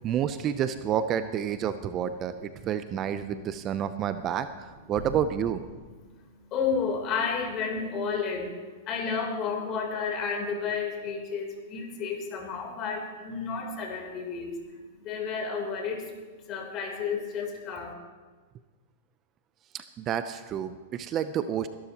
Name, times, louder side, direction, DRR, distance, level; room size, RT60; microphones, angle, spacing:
voice 1, 0.0-5.6 19.7-21.7, right 9 dB, 35° right, 11 dB, 0.6 m, -29 dB
voice 2, 6.0-17.9, left 5 dB, 40° left, 2 dB, 3.5 m, -32 dB
21.5 x 12.0 x 3.0 m, 1.4 s
hypercardioid pair, 115°, 0 cm